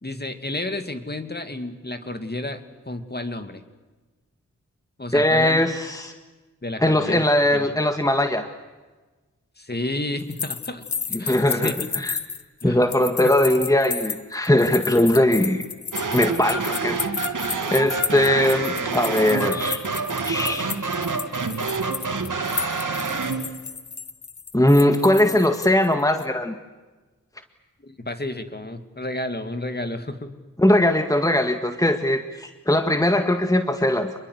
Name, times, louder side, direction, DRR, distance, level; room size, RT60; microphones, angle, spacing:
voice 1, 0.0-3.6 5.0-5.6 6.6-7.2 7.5-7.7 9.6-10.8 11.2-11.7 12.6-12.9 13.2-13.3 18.8-19.6 27.8-30.3 30.7-30.8, left 2 dB, 30° left, 8 dB, 2.7 m, -31 dB
voice 2, 5.1-6.1 6.8-8.5 11.1-12.2 12.6-15.6 16.1-17.0 17.7-19.8 20.3-20.7 24.5-26.6 30.6-34.1, left 1 dB, 10° left, 6 dB, 1.9 m, -20 dB
sound 1, 10.2-25.9 26.2-26.3, left 6 dB, 65° left, 1.2 m, -32 dB
sound 2, 15.9-23.5, right 4 dB, 75° right, 3.0 m, -27 dB
27.0 x 22.0 x 8.2 m, 1.2 s
cardioid pair, 50°, 31 cm